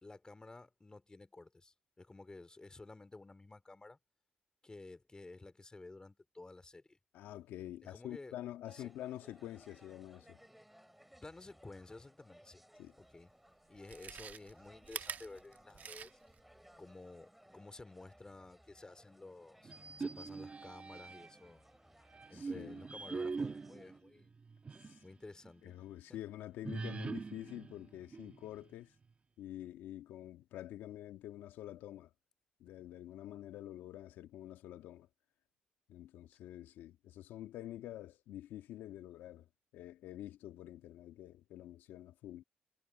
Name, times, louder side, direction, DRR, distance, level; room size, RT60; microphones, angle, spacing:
voice 1, 0.0-4.0 4.6-7.0 7.8-8.3 8.7-8.8 11.2-12.6 13.0-13.3 13.7-16.1 16.8-19.7 20.0-21.6 22.3-24.3 25.0-25.7 26.1-26.2, left 2 dB, 25° left, 2.8 m, -53 dB
voice 2, 7.1-10.4 12.8-12.9 22.3-22.8 24.8-25.0 25.6-28.9 29.4-32.1 32.6-35.1 35.9-39.5 39.7-42.4, left 13 dB, 80° left, 1.6 m, -47 dB
sound 1, 8.6-24.0, equal, 5° right, 4.2 m, -63 dB
Chewing mastication, 13.0-13.1 13.7-16.4 16.8-16.9, right 7 dB, 55° right, 1.3 m, -46 dB
sound 2, 19.6-21.5 22.1-25.1 25.4-25.5 26.6-28.7, right 4 dB, 35° right, 1.4 m, -43 dB
supercardioid pair, 60°, 3 cm